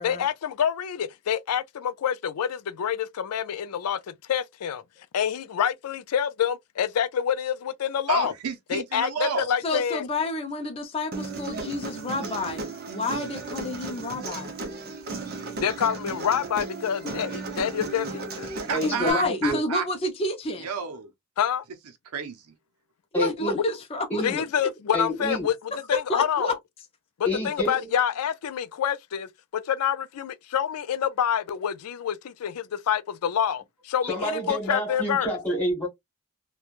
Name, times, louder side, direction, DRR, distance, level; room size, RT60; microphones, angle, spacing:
voice 1, 0.0-4.8 5.1-8.3 8.7-10.1 15.6-18.5 21.4-21.6 23.6-23.7 24.2-25.5 25.9-26.6 27.2-35.3, left 8 dB, 85° left, 0.4 m, -27 dB
voice 2, 8.1-9.5 18.4-19.8 20.6-21.1 22.1-22.5, right 6 dB, 90° right, 0.6 m, -31 dB
voice 3, 9.6-14.5 18.8-20.7 23.1-24.4 26.1-26.5, left 2 dB, 25° left, 0.4 m, -30 dB
Human voice, 11.1-19.1, right 3 dB, 45° right, 0.6 m, -35 dB
voice 4, 18.7-19.6 23.1-23.6 24.1-24.4 24.9-25.5 27.2-27.9 34.0-35.9, equal, 10° left, 1.4 m, -28 dB
3.0 x 2.2 x 2.4 m
head